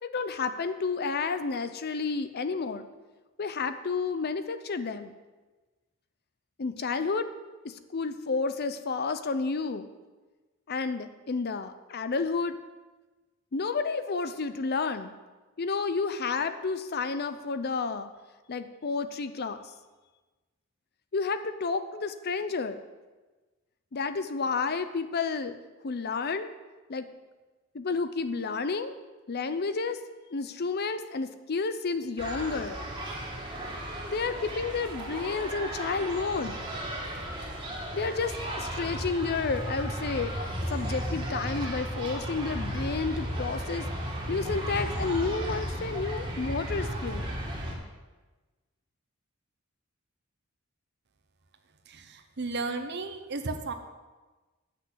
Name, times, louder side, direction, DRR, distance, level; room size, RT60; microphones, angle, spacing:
voice 1, 0.0-2.9 3.4-5.1 6.6-7.3 7.6-9.9 10.7-12.6 13.5-15.1 15.6-18.1 18.5-19.6 21.1-22.8 23.9-25.6 25.8-26.5 26.9-27.1 27.7-28.9 29.3-30.0 30.3-32.8 34.1-36.6 37.9-40.4 40.7-43.9 44.3-47.3, left 4 dB, 50° left, 11 dB, 0.6 m, -31 dB
sound 1, 32.2-47.7, equal, 25° right, 2.0 m, -34 dB
voice 2, 51.9-53.7, right 3 dB, 55° right, 7 dB, 0.9 m, -34 dB
8.4 x 6.3 x 7.9 m, 1.2 s
head